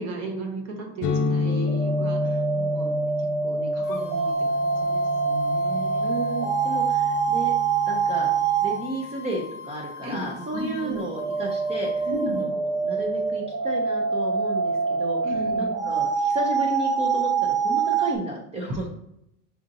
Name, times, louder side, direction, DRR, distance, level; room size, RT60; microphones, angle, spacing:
voice 1, 0.0-2.9 3.4-6.1 10.0-11.0 12.1-12.5 15.2-15.7 18.7-18.9, right 2 dB, 40° right, 3 dB, 0.9 m, -35 dB
sound 1, 1.0-8.6, left 4 dB, 55° left, 0.5 m, -31 dB
sound 2, 1.4-8.8 10.8-18.1, right 5 dB, 65° right, 1.0 m, -25 dB
sound 3, 3.8-12.5, left 3 dB, 25° left, 0.8 m, -41 dB
voice 2, 6.0-7.5 7.9-8.3 8.6-15.2 15.6-18.9, right 1 dB, 20° right, -1 dB, 0.3 m, -33 dB
5.5 x 2.5 x 2.6 m, 0.79 s
supercardioid pair, 150°, 38 cm